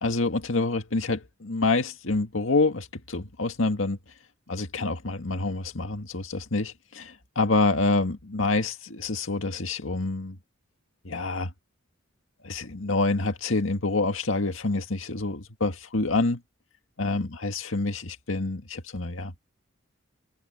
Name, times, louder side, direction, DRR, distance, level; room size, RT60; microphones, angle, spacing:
voice 1, 0.0-4.0 4.5-10.4 11.0-11.5 12.4-16.4 17.0-19.4, left 3 dB, 85° left, 1.9 m, -27 dB
head